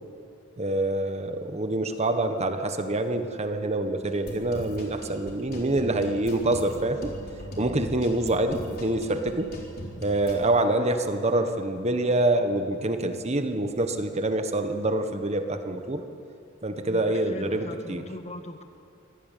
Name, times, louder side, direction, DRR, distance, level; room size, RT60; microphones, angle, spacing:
voice 1, 0.6-7.1 7.6-9.5 10.0-16.0 16.6-18.0, right 2 dB, 35° right, 7 dB, 1.3 m, -26 dB
sound 1, 4.1-10.5, equal, 50° left, 4.2 m, -41 dB
voice 2, 16.8-18.6, left 1 dB, 35° left, 7 dB, 1.5 m, -40 dB
24.5 x 16.5 x 9.2 m, 2.5 s
head